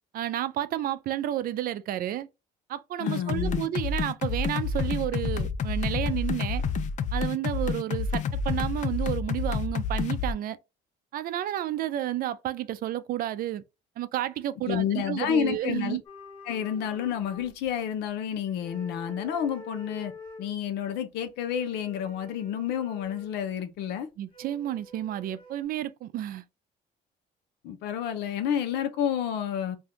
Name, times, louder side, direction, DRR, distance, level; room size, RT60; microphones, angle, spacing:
voice 1, 0.1-2.3 2.7-6.6 7.1-10.6 11.1-13.6 14.0-16.0 24.2-26.4, right 12 dB, 60° right, 0.4 m, -31 dB
voice 2, 3.0-3.7 14.7-16.0 16.5-20.1 20.4-24.1 27.6-29.8, left 9 dB, 85° left, 0.7 m, -30 dB
sound 1, 3.1-10.3, left 5 dB, 45° left, 0.4 m, -29 dB
sound 2, 16.1-18.1 18.5-20.5 21.4-23.3 24.3-25.6, left 3 dB, 30° left, 1.2 m, -46 dB
2.6 x 2.3 x 3.5 m
cardioid pair, 110°, 17 cm